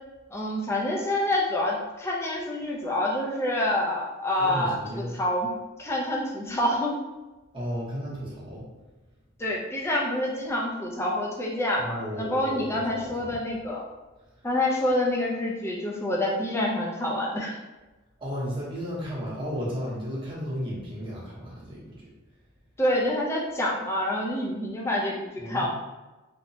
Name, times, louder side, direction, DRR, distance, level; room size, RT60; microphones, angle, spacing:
voice 1, 0.3-4.8 5.1-5.5 5.8-7.0 9.4-13.8 14.4-17.6 22.8-25.7, left 1 dB, 10° left, -3 dB, 0.4 m, -27 dB
voice 2, 4.4-5.2 7.5-8.6 11.8-13.4 18.2-22.1 25.4-25.7, equal, 25° right, -6 dB, 0.8 m, -34 dB
2.8 x 2.1 x 2.6 m, 1.2 s
head